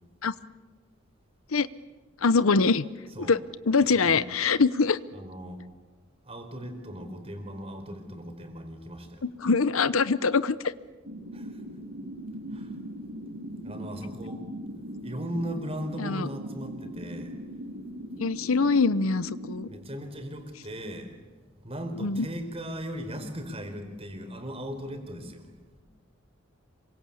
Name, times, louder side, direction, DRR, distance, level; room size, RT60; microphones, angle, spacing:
voice 1, 2.2-2.9 3.2-3.4 3.7-5.0 9.2-10.7 16.0-16.3 18.2-19.7 22.0-22.3, left 4 dB, 85° left, 16 dB, 0.8 m, -23 dB
voice 2, 3.9-4.2 5.1-5.6 6.2-9.2 11.3-11.6 12.5-12.8 13.4-14.4 15.0-17.4 19.7-25.8, equal, 30° right, 5 dB, 4.4 m, -38 dB
sound 1, 11.0-19.7, equal, 70° right, 6.2 m, -40 dB
27.0 x 24.0 x 8.5 m, 1.3 s
head